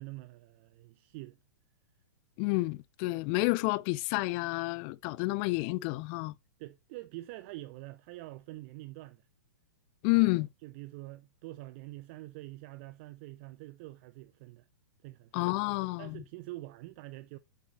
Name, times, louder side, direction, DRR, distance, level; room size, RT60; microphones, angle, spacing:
voice 1, 0.0-1.4 6.6-9.3 10.1-14.7 15.0-15.5 16.0-17.4, right 19 dB, 35° right, 0.5 m, -46 dB
voice 2, 2.4-6.3 10.0-10.5 15.3-16.2, left 23 dB, 30° left, 0.4 m, -29 dB
8.3 x 7.0 x 2.9 m
figure-of-eight pair, 105°, 11 cm